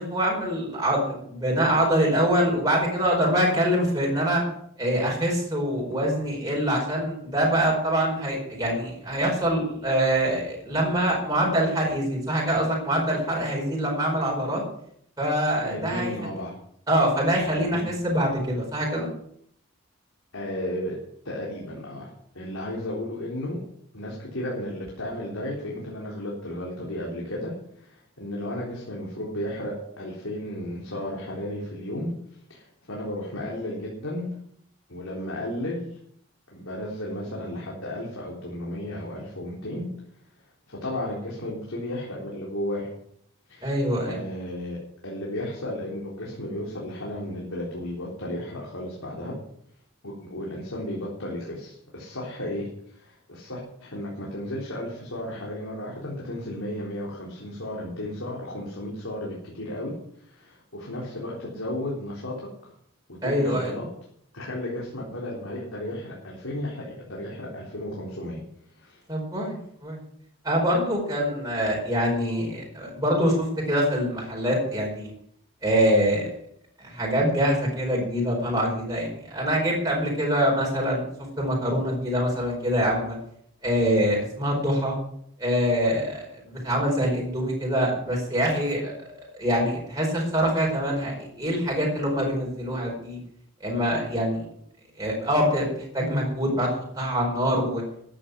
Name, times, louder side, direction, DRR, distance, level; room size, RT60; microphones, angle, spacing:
voice 1, 0.0-4.4 4.8-14.6 15.2-16.1 16.9-19.1 43.6-44.2 63.2-63.7 69.1-70.0 70.4-75.1 75.6-76.3 76.8-83.2 83.6-85.0 85.4-88.9 89.4-93.2 93.6-94.4 95.0-96.7 97.0-97.8, equal, 15° right, -3 dB, 4.8 m, -24 dB
voice 2, 15.6-16.6 17.5-17.8 20.3-21.0 21.2-23.6 23.9-34.4 34.9-36.0 36.5-39.9 40.7-42.9 43.5-43.8 44.0-49.4 50.0-62.4 62.6-62.7 63.1-63.9 64.3-68.4 68.8-69.0, left 1 dB, 85° left, -4 dB, 3.8 m, -34 dB
13.5 x 10.0 x 6.3 m, 0.68 s
head